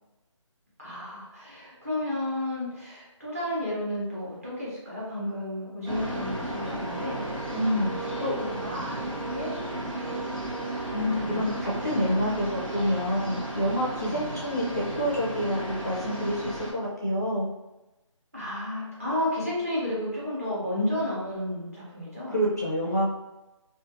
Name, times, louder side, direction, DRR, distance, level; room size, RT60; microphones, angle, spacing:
voice 1, 0.8-7.2 7.5-10.2 11.0-12.3 14.0-14.4 18.3-22.3, left 1 dB, 25° right, -8 dB, 0.8 m, -33 dB
sound 1, 5.9-16.7, right 1 dB, 90° right, 1.0 m, -34 dB
voice 2, 7.5-8.3 10.9-17.5 22.3-23.1, equal, 30° left, -6 dB, 0.5 m, -27 dB
2.5 x 2.4 x 2.5 m, 1.0 s
figure-of-eight pair, 180°, 17 cm